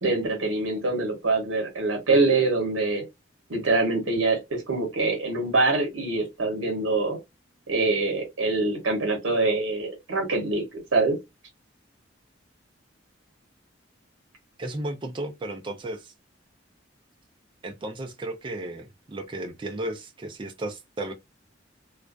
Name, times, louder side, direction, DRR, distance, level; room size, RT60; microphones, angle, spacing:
voice 1, 0.0-3.1 3.5-7.2 7.7-10.6 10.9-11.2, right 3 dB, 75° right, 0.8 m, -24 dB
voice 2, 14.6-16.1 17.6-21.1, right 1 dB, 25° right, 0.4 m, -34 dB
2.4 x 2.1 x 2.4 m
head